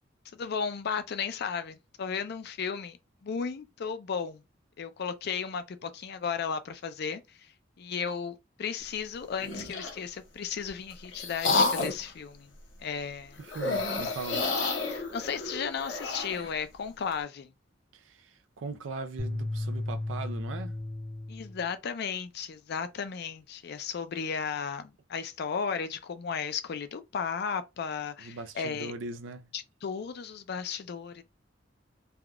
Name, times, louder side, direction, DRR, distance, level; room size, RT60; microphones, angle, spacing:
voice 1, 0.3-3.0 3.2-4.4 4.8-7.5 7.8-12.5 12.8-13.4 14.0-14.1 14.9-17.5 21.3-28.9 29.5-31.2, left 6 dB, 60° left, 0.4 m, -35 dB
sound 1, 9.4-10.0 10.7-12.1 13.5-16.5, left 3 dB, 75° left, 0.9 m, -30 dB
voice 2, 13.4-14.5 17.9-20.8 28.2-29.5, right 3 dB, 90° right, 0.4 m, -40 dB
sound 2, 19.2-21.7, left 1 dB, 5° left, 0.7 m, -34 dB
3.5 x 2.3 x 2.3 m
head